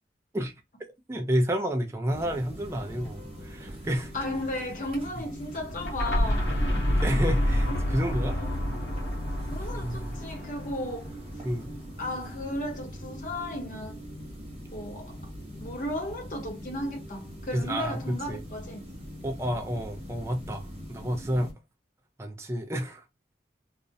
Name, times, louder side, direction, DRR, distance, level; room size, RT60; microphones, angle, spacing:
voice 1, 1.1-4.1 7.0-8.4 9.8-10.2 11.4-11.7 17.5-18.4 19.2-21.5 22.2-23.0, equal, 15° right, 0.3 m, -30 dB
sound 1, 2.1-21.5, equal, 35° right, 1.0 m, -42 dB
voice 2, 4.1-6.5 8.3-8.6 9.5-11.2 12.0-14.0 14.7-15.3 15.6-18.9 21.0-21.3, left 1 dB, 45° left, 0.7 m, -35 dB
sound 2, 5.7-11.5, equal, 80° left, 0.8 m, -28 dB
2.4 x 2.0 x 2.5 m
head